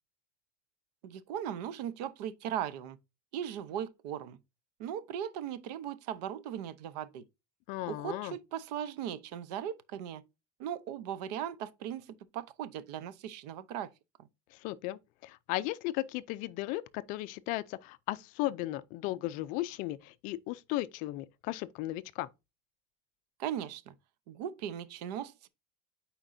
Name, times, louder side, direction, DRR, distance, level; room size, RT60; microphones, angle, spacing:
voice 1, 1.0-3.0 3.3-4.4 4.8-7.2 7.9-10.2 10.6-13.9 23.4-23.9 24.3-25.5, right 10 dB, 80° right, 0.8 m, -38 dB
voice 2, 7.7-8.3 14.5-22.3, left 17 dB, 40° left, 0.4 m, -36 dB
8.8 x 4.4 x 2.6 m
cardioid pair, 170°, 21 cm